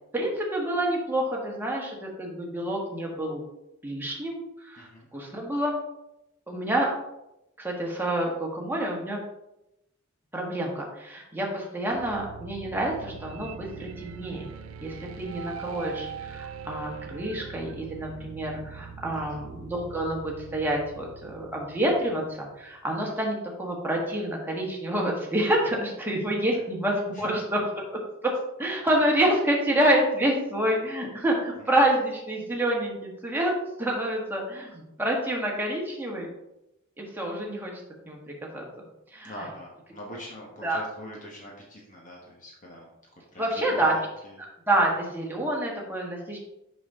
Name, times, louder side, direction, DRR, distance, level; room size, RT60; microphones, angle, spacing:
voice 1, 0.1-3.4 3.8-5.7 6.5-6.9 7.6-9.2 10.3-14.4 14.8-27.6 27.9-28.3 28.6-33.5 33.8-36.3 37.0-37.7 38.1-38.2 38.5-38.6 39.1-39.3 40.6-40.8 43.4-43.9 44.4-46.4, right 1 dB, 10° right, -2 dB, 1.4 m, -28 dB
voice 2, 4.8-5.1 19.1-19.4 26.5-26.7 27.1-27.3 31.6-31.7 39.2-42.9 43.1-44.4, equal, 40° left, -2 dB, 1.2 m, -43 dB
sound 1, 11.9-22.8, right 6 dB, 85° right, 0.5 m, -42 dB
6.0 x 5.5 x 3.6 m, 0.88 s
head